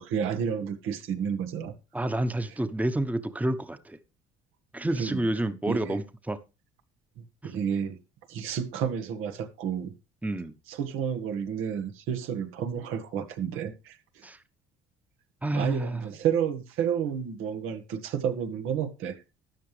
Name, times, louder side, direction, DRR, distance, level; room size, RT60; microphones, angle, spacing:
voice 1, 0.0-1.7 5.0-5.3 5.7-6.0 7.2-8.0 8.3-9.9 10.7-14.3 15.5-19.2, right 8 dB, 75° right, 1.7 m, -31 dB
voice 2, 1.9-4.0 4.7-6.4 7.4-7.5 10.2-10.5 14.2-14.4 15.4-16.0, right 1 dB, 5° right, 1.1 m, -29 dB
13.5 x 9.5 x 3.3 m
supercardioid pair, 75°, 21 cm